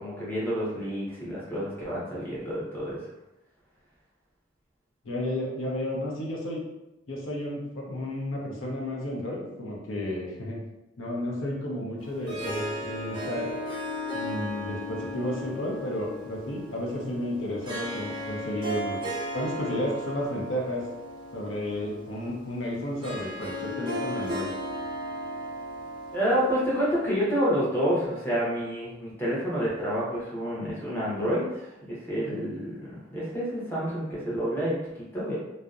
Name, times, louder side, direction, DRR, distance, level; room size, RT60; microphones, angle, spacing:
voice 1, 0.0-3.0 26.1-35.4, equal, 10° left, -7 dB, 0.7 m, -29 dB
voice 2, 5.0-6.6 7.1-10.6 11.0-13.5 14.1-19.0 19.3-20.8 21.3-24.5 32.3-32.4, left 1 dB, 90° left, -2 dB, 0.6 m, -32 dB
Harp, 12.0-27.3, left 1 dB, 25° right, 0.5 m, -36 dB
2.6 x 2.0 x 2.3 m, 0.95 s
head